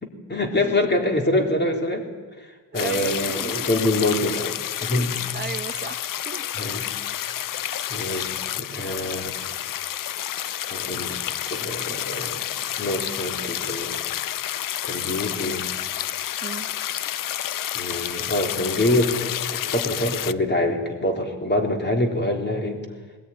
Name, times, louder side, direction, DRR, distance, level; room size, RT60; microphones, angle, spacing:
voice 1, 0.0-2.1 2.4-4.5 4.8-5.2 6.5-6.9 7.9-9.4 10.7-12.4 12.7-14.0 14.8-15.7 17.7-22.8, left 1 dB, 25° left, 4 dB, 3.6 m, -25 dB
sound 1, 2.7-20.3, left 11 dB, 55° left, 0.6 m, -30 dB
voice 2, 2.7-3.7 5.3-6.5 8.1-8.4 16.4-16.7, right 4 dB, 25° right, 7 dB, 1.3 m, -35 dB
20.5 x 19.5 x 9.9 m, 1.4 s
cardioid pair, 130°, 38 cm